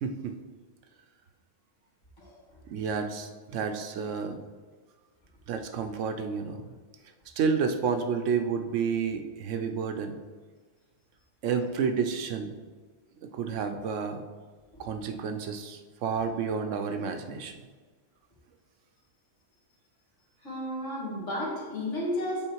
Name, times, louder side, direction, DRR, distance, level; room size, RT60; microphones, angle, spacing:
voice 1, 0.0-0.3 2.7-4.4 5.5-6.7 7.4-10.1 11.4-12.5 13.2-14.2 14.8-17.6, right 6 dB, 85° right, 7 dB, 1.0 m, -30 dB
voice 2, 20.4-22.5, left 1 dB, 75° left, -5 dB, 2.2 m, -32 dB
7.9 x 3.6 x 4.6 m, 1.4 s
omnidirectional pair, 1.2 m